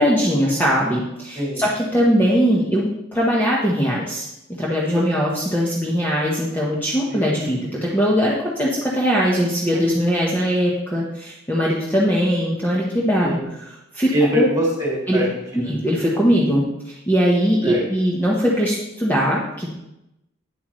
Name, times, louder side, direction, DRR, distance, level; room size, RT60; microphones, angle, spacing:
voice 1, 0.0-4.3 4.6-13.4 13.9-14.5 15.1-15.2 15.7-19.7, equal, 10° left, -5 dB, 1.1 m, -20 dB
voice 2, 14.1-15.7 17.6-17.8, right 1 dB, 15° right, -3 dB, 2.6 m, -24 dB
9.1 x 8.0 x 3.1 m, 0.88 s
head